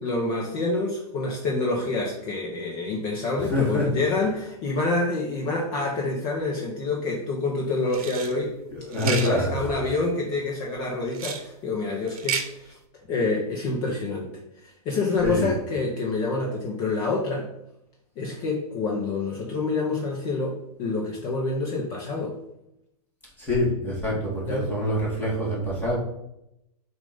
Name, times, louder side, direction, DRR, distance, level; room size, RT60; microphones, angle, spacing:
voice 1, 0.0-8.5 9.0-12.8 13.1-14.3 14.6-17.5 18.2-22.4 24.1-24.2 24.5-24.9, left 3 dB, 30° left, -1 dB, 0.9 m, -27 dB
voice 2, 3.5-3.8 8.7-9.6 15.2-15.5 23.4-26.0, left 1 dB, 10° left, -6 dB, 1.7 m, -25 dB
sound 1, 7.9-8.3 8.9-9.3 11.1-11.4 12.1-12.5, right 7 dB, 65° right, 0.9 m, -31 dB
7.2 x 2.7 x 5.0 m, 0.82 s
hypercardioid pair, 160°, 20 cm